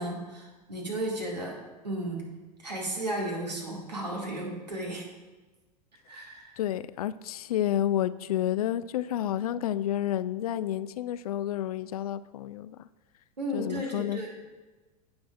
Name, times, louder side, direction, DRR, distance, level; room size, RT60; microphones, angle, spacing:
voice 1, 0.0-1.6 1.8-2.3 2.6-5.1 6.1-6.6 13.4-14.4, right 1 dB, 85° right, -2 dB, 2.1 m, -34 dB
voice 2, 6.6-12.8 13.5-14.2, left 12 dB, 65° left, 16 dB, 0.4 m, -30 dB
15.5 x 6.1 x 2.4 m, 1.2 s
figure-of-eight pair, 85°, 21 cm